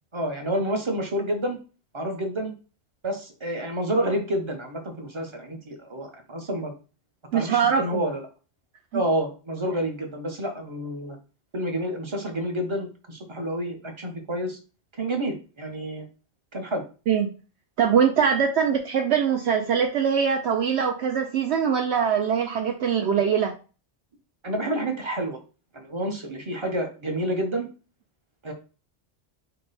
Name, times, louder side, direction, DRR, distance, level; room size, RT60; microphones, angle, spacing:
voice 1, 0.1-1.6 1.9-2.5 3.0-6.7 7.3-8.2 8.9-11.2 11.5-14.6 15.0-16.1 16.5-16.8 24.4-25.4 25.7-27.7 28.4-28.5, right 1 dB, 30° right, 4 dB, 0.7 m, -29 dB
voice 2, 7.3-7.8 8.9-9.0 17.1-17.3 17.8-23.5, right 7 dB, 70° right, 3 dB, 0.8 m, -22 dB
5.6 x 2.2 x 4.0 m, 0.35 s
omnidirectional pair, 1.2 m